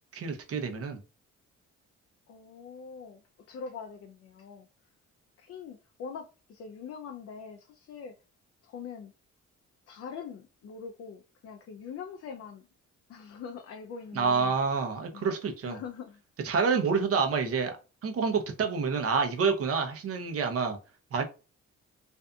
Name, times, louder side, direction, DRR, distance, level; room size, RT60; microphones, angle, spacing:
voice 1, 0.1-1.0 14.1-15.8 16.4-17.8 18.0-20.8 21.1-21.2, right 5 dB, 50° right, 0.7 m, -28 dB
voice 2, 2.3-3.2 3.5-4.7 5.4-8.1 8.6-9.1 9.9-12.6 13.1-14.5 15.1-15.3 15.6-16.2, left 6 dB, 55° left, 0.5 m, -43 dB
2.6 x 2.4 x 2.3 m
cardioid pair, 90°, 30 cm